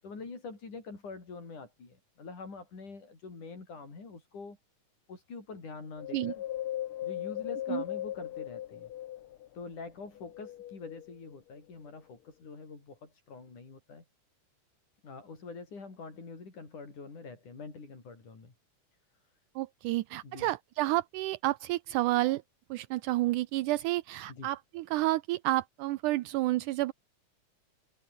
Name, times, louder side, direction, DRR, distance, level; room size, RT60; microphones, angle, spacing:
voice 1, 0.0-4.6 5.1-6.4 7.0-8.9 9.5-14.0 15.0-18.5 20.2-20.5 24.3-24.5, left 4 dB, 70° left, 7.8 m, -45 dB
Wind, 6.0-9.5 10.1-11.3 11.9-12.0, left 13 dB, 85° left, 1.1 m, -38 dB
voice 2, 19.6-22.4 22.7-26.9, right 17 dB, 80° right, 2.2 m, -30 dB
omnidirectional pair, 3.7 m